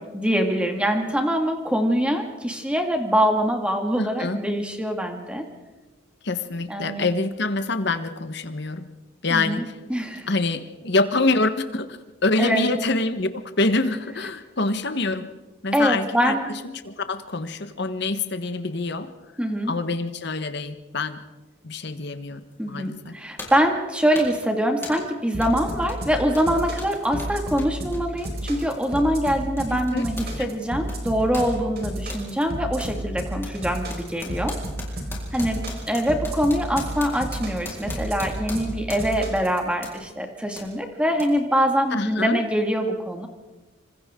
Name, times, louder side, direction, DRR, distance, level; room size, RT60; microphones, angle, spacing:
voice 1, 0.0-5.5 6.7-7.1 9.3-9.6 9.9-10.3 12.4-12.7 15.7-16.5 19.4-19.7 22.6-34.5 35.3-43.3, equal, 5° right, 3 dB, 2.2 m, -24 dB
voice 2, 4.0-4.4 6.2-8.9 9.2-9.7 10.3-13.3 13.6-15.3 15.6-16.3 16.8-19.1 19.7-21.2 21.6-22.4 22.7-23.1 29.7-30.0 30.4-30.5 41.9-42.4, left 2 dB, 55° left, 9 dB, 1.3 m, -25 dB
sound 1, 22.5-22.6 23.4-23.7 24.1-24.4 24.8-25.1 25.4-25.6 25.8-30.4 30.6-32.3 32.8-33.0 33.4-39.3 39.8-40.0 40.6-40.7 41.2-41.3, left 2 dB, 10° left, 4.1 m, -40 dB
sound 2, 25.3-39.6, right 1 dB, 50° right, 5.0 m, -32 dB
27.0 x 25.0 x 3.8 m, 1.1 s
head